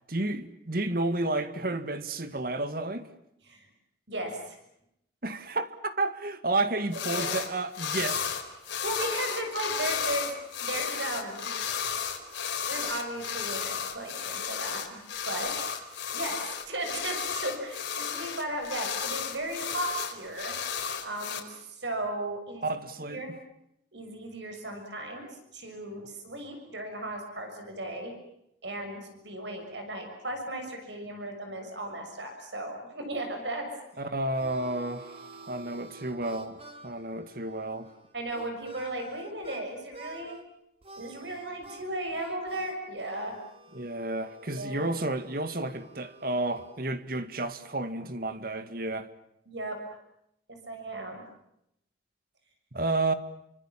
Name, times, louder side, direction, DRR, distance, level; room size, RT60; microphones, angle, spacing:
voice 1, 0.1-3.1 5.2-8.4 22.6-23.2 34.0-37.9 43.7-49.1 52.7-53.1, right 2 dB, 50° right, 2.0 m, -31 dB
voice 2, 4.1-4.6 6.9-7.3 8.6-10.3 10.6-11.5 12.7-15.0 15.2-15.5 16.1-20.6 21.0-22.7 23.0-23.3 23.9-25.3 25.5-28.1 28.6-33.7 38.1-40.4 41.0-43.4 44.5-44.9 49.5-50.0 50.5-51.2, right 1 dB, 70° right, 6.7 m, -36 dB
sound 1, 6.9-7.5 7.7-21.4, left 7 dB, 85° left, 4.7 m, -33 dB
Harmonica, 33.8-39.6 39.9-40.4 40.8-46.8, right 2 dB, 30° right, 3.5 m, -49 dB
29.5 x 25.5 x 7.4 m
head